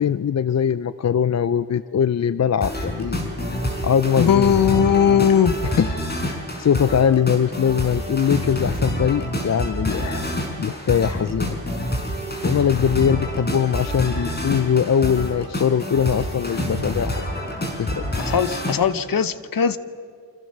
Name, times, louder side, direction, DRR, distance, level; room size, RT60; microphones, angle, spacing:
voice 1, 0.0-3.2 3.8-4.5 5.8-5.9 6.2-10.3 10.6-11.6 12.4-17.3 17.8-18.0, left 8 dB, 45° left, 14 dB, 0.6 m, -21 dB
sound 1, 2.6-18.8, equal, 25° left, 5.3 m, -27 dB
voice 2, 4.2-5.6 18.2-19.8, left 8 dB, 60° left, 14 dB, 1.1 m, -18 dB
29.0 x 25.5 x 6.7 m, 2.2 s
wide cardioid pair, 105°, 38 cm